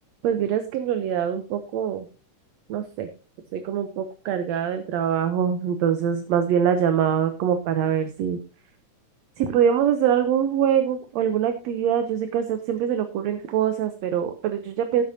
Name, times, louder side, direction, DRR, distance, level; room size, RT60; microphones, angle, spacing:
voice 1, 0.2-2.1 2.7-3.1 3.5-8.4 9.4-15.0, right 8 dB, 70° right, 8 dB, 1.9 m, -24 dB
17.0 x 7.9 x 2.8 m, 0.34 s
omnidirectional pair, 3.6 m